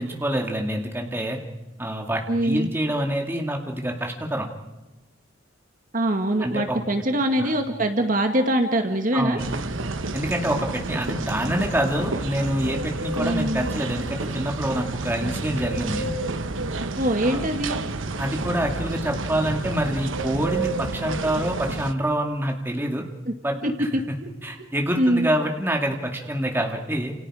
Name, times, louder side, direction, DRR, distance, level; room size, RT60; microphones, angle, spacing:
voice 1, 0.0-1.4 1.8-4.5 6.4-6.8 7.4-7.6 9.1-9.4 10.1-16.1 17.2-17.5 18.2-23.0 23.4-24.2 24.4-27.1, right 1 dB, 10° right, 2 dB, 2.3 m, -26 dB
voice 2, 2.3-2.7 5.9-9.4 13.2-13.6 17.0-17.8 23.3-23.4 23.6-24.3 25.0-25.3, right 1 dB, 40° right, 5 dB, 1.9 m, -23 dB
sound 1, 9.4-21.9, right 3 dB, 85° right, 1.1 m, -30 dB
29.5 x 28.0 x 5.0 m, 1.1 s
head